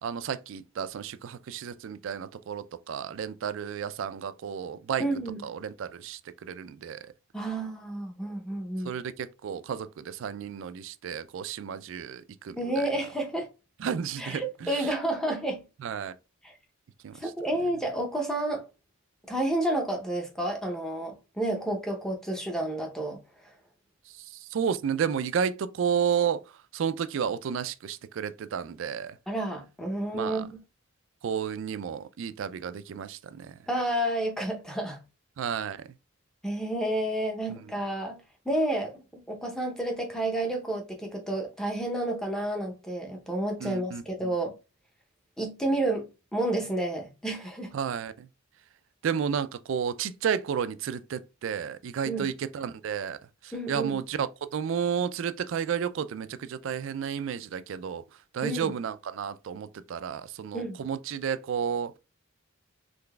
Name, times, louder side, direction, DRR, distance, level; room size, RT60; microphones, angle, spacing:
voice 1, 0.0-5.0 5.4-7.1 8.8-12.9 13.8-14.9 15.8-16.1 17.0-17.3 24.3-26.4 26.7-29.2 30.1-30.5 31.2-33.6 35.4-35.8 37.5-37.6 43.6-44.3 47.7-48.3 49.0-53.2 53.4-58.0 58.3-61.9, right 7 dB, 60° right, 0.3 m, -32 dB
voice 2, 5.0-5.4 7.3-8.9 12.6-13.5 14.2-15.6 16.4-16.5 17.1-18.7 19.3-23.2 29.3-30.6 33.7-35.0 36.4-38.2 38.5-44.5 45.4-47.7 52.0-52.3 53.5-54.0 58.4-58.7 60.5-60.8, right 1 dB, 5° left, 0.7 m, -30 dB
3.8 x 3.3 x 2.2 m
head